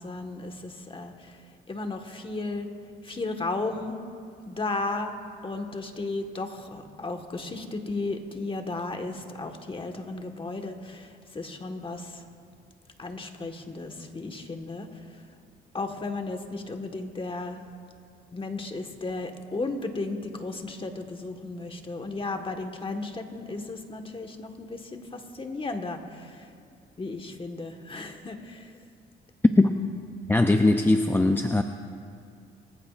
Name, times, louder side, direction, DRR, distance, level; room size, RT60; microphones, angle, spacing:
voice 1, 0.0-1.3 1.7-2.7 3.0-4.0 4.5-5.2 5.4-12.2 13.0-14.9 15.7-17.6 18.3-26.5 27.0-28.7, left 3 dB, 25° left, 5 dB, 1.5 m, -34 dB
voice 2, 30.3-31.6, left 2 dB, 10° left, 6 dB, 0.5 m, -20 dB
23.5 x 15.0 x 2.5 m, 2.5 s
cardioid pair, 90°, 20 cm